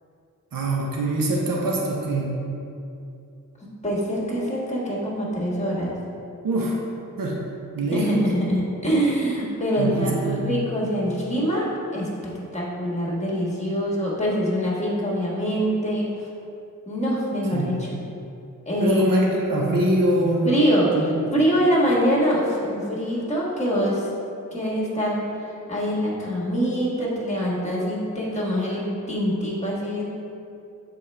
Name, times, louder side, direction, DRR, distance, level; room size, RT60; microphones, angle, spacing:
voice 1, 0.5-2.3 6.4-6.8 7.2-7.4 7.7-8.1 9.8-10.5 17.5-17.8 18.8-20.5 20.9-21.3, right 1 dB, 85° right, -2 dB, 0.9 m, -23 dB
voice 2, 3.8-5.9 7.9-12.1 12.5-16.1 16.9-18.0 18.7-19.1 20.4-20.9 21.3-24.1 24.5-25.2 25.7-30.0, equal, 20° left, -5 dB, 1.4 m, -24 dB
7.5 x 4.3 x 3.3 m, 2.6 s
wide cardioid pair, 105°, 33 cm